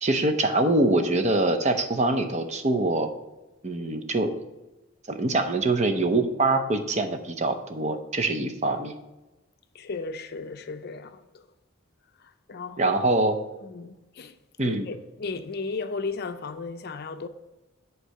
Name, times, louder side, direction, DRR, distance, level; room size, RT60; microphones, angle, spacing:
voice 1, 0.0-3.1 3.6-4.3 5.1-8.9 12.8-13.4 14.6-14.9, right 2 dB, 35° right, 0.7 m, -24 dB
voice 2, 9.7-11.4 12.2-13.0 13.6-14.3 14.6-17.3, left 4 dB, 50° left, 0.5 m, -35 dB
8.3 x 4.6 x 6.4 m
head